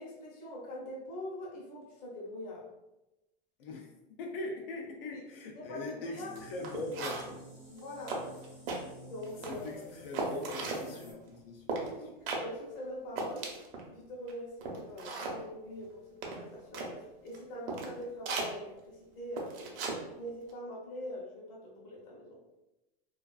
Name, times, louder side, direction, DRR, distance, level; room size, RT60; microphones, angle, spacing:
voice 1, 0.0-2.7 5.1-6.3 7.7-8.5 9.0-10.0 10.8-11.0 11.8-13.6 13.9-22.4, left 1 dB, 30° left, -4 dB, 0.7 m, -44 dB
voice 2, 3.6-3.9 4.2-7.2 9.5-11.6, left 2 dB, 70° left, 1 dB, 0.5 m, -41 dB
sound 1, 6.1-11.1, equal, 5° left, 0.3 m, -51 dB
sound 2, 6.4-6.5 6.6-7.4 7.8-7.9 8.1-8.8 9.2-9.7 10.1-10.8 11.7-11.9 12.3-12.4 12.8-12.9 13.2-13.8 14.3-14.4 14.6-15.4 16.2-16.9 17.3-17.4 17.7-17.9 18.3-18.5 19.4-20.0 20.3-20.5, right 3 dB, 70° right, 0.6 m, -36 dB
2.3 x 2.3 x 2.3 m, 0.99 s
supercardioid pair, 165°, 30 cm